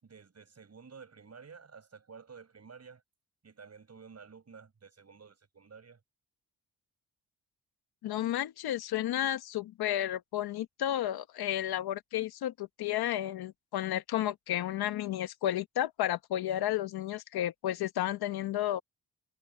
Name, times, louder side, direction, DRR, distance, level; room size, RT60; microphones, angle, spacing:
voice 1, 0.0-3.0 3.4-6.0, right 5 dB, 45° right, 6.3 m, -52 dB
voice 2, 8.0-18.8, left 12 dB, 85° left, 1.1 m, -32 dB
cardioid pair, 70°, 37 cm